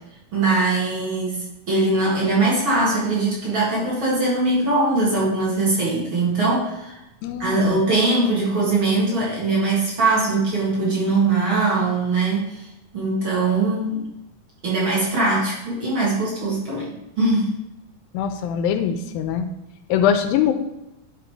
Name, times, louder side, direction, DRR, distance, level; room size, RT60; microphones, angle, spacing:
voice 1, 0.3-7.0 7.4-12.6 12.9-14.0 14.6-17.5, right 3 dB, 40° right, -7 dB, 2.5 m, -21 dB
voice 2, 7.2-7.8 18.1-19.5 19.9-20.5, left 8 dB, 90° left, 7 dB, 2.4 m, -22 dB
11.5 x 4.0 x 4.7 m, 0.92 s
omnidirectional pair, 4.2 m